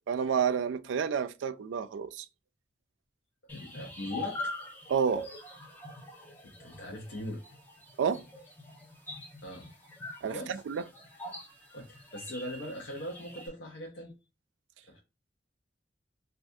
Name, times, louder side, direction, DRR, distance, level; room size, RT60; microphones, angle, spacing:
voice 1, 0.1-2.3 4.9-5.3 8.0-8.2 10.2-10.8, right 7 dB, 85° right, 0.3 m, -30 dB
voice 2, 3.5-4.9 6.4-7.4 9.4-9.7 10.3-10.6 11.7-14.1 14.9-15.0, equal, 75° left, 0.6 m, -41 dB
sound 1, 3.5-13.5, left 2 dB, 10° left, 0.7 m, -44 dB
3.3 x 2.4 x 2.6 m
head